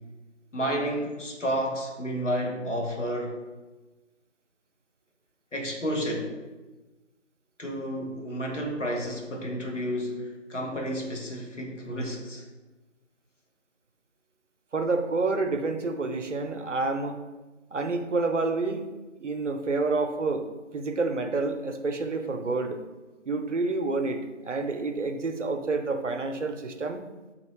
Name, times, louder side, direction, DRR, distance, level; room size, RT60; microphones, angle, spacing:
voice 1, 0.5-3.4 5.5-6.4 7.6-12.5, equal, 75° left, 1 dB, 1.0 m, -31 dB
voice 2, 14.7-17.2 17.7-18.9 19.2-22.8 23.3-27.0, right 3 dB, 75° right, 6 dB, 0.6 m, -28 dB
2.9 x 2.9 x 4.1 m, 1.2 s
figure-of-eight pair, 170°, 37 cm